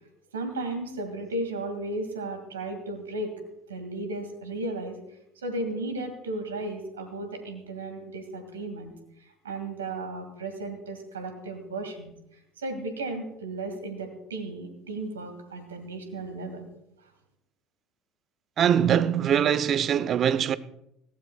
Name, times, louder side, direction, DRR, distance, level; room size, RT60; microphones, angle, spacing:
voice 1, 0.3-3.3 3.7-5.0 5.4-8.9 9.4-12.1 12.6-16.7, right 2 dB, 80° right, 1.9 m, -34 dB
voice 2, 18.6-20.6, right 9 dB, 45° right, 0.6 m, -22 dB
20.0 x 15.5 x 2.3 m
figure-of-eight pair, 65°, 0 cm